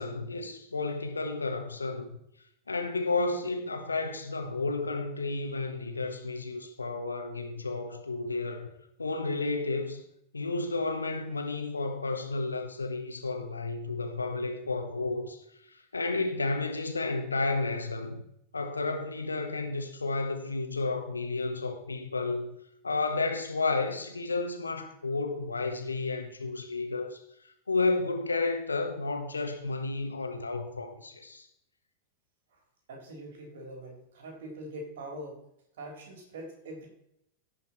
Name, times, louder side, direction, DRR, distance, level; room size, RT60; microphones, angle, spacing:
voice 1, 0.0-2.2 2.7-8.7 9.0-10.0 10.3-18.2 18.5-22.6 22.8-31.5, left 3 dB, 80° left, 1.5 m, -32 dB
voice 2, 32.9-35.4 35.8-36.9, right 1 dB, 60° right, 3.6 m, -43 dB
16.5 x 5.7 x 4.4 m
figure-of-eight pair, 90°, 0 cm